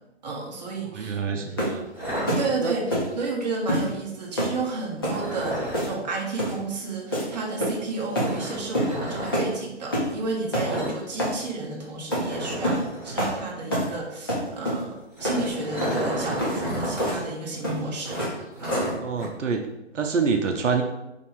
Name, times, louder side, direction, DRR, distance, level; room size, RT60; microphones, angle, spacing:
voice 1, 0.2-1.6 2.4-18.2, right 3 dB, 35° right, -2 dB, 0.8 m, -32 dB
voice 2, 1.0-1.8 2.6-2.7 19.0-20.8, right 5 dB, 85° right, 5 dB, 0.6 m, -26 dB
sound 1, 1.6-1.8 2.3-2.5 2.9-3.1 3.7-3.9 4.4-4.6 5.0-5.2 5.7-6.0 6.4-6.6 7.1-7.3 7.6-7.9 8.1-8.3 8.7-8.9 9.3-9.5 9.9-10.1 10.5-10.7 11.2-11.4 12.1-12.3 12.6-12.8 13.2-13.4 13.7-13.9 14.3-14.8 15.2-15.4 15.8-16.0 16.4-16.6 17.0-17.2 17.6-17.8 18.2-18.4 18.7-19.0, equal, 20° left, 0.5 m, -26 dB
sound 2, 1.9-3.0 5.0-5.9 8.1-9.4 10.6-11.0 11.2-11.4 11.7-11.8 12.2-13.3 14.9-17.1 17.4-17.5 18.0-19.3, equal, 5° right, 1.4 m, -32 dB
2.9 x 2.5 x 3.9 m, 0.93 s
figure-of-eight pair, 150°, 36 cm